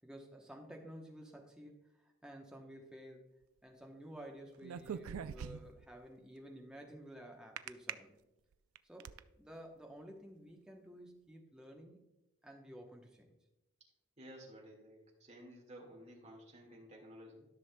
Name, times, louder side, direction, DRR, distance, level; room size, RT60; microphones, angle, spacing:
voice 1, 0.0-3.3 3.6-8.2 8.8-12.0 12.4-13.3, equal, 5° right, 1 dB, 0.8 m, -53 dB
sound 1, 4.6-5.9 7.6-7.9 8.5-9.2, right 8 dB, 85° right, 0.3 m, -42 dB
voice 2, 14.2-17.5, equal, 30° right, -2 dB, 1.8 m, -54 dB
13.5 x 6.2 x 2.2 m, 0.98 s
head